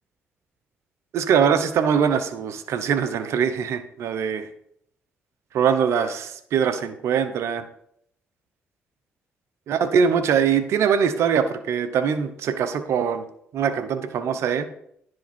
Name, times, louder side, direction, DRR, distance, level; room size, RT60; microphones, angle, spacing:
voice 1, 1.1-4.5 5.5-7.6 9.7-13.2 13.5-14.7, right 7 dB, 75° right, 11 dB, 0.9 m, -22 dB
10.5 x 7.8 x 4.4 m, 0.69 s
supercardioid pair, 60°, 5 cm